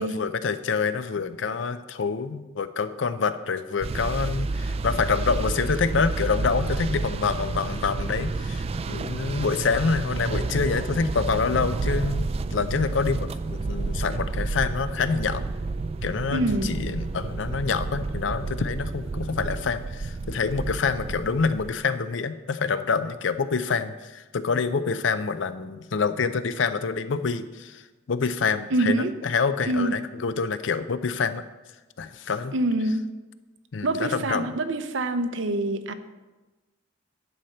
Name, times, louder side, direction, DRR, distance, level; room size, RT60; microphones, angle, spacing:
voice 1, 0.0-15.4 16.0-27.8 28.1-31.4 32.0-32.5 33.7-34.6, left 5 dB, 80° left, 12 dB, 0.5 m, -27 dB
sound 1, 3.8-21.7, right 3 dB, 35° right, 0.3 m, -30 dB
voice 2, 16.3-16.8 28.7-29.1 29.7-29.9 32.5-33.1 33.8-35.9, right 2 dB, 80° right, 10 dB, 0.6 m, -25 dB
11.0 x 4.3 x 6.5 m, 1.2 s
head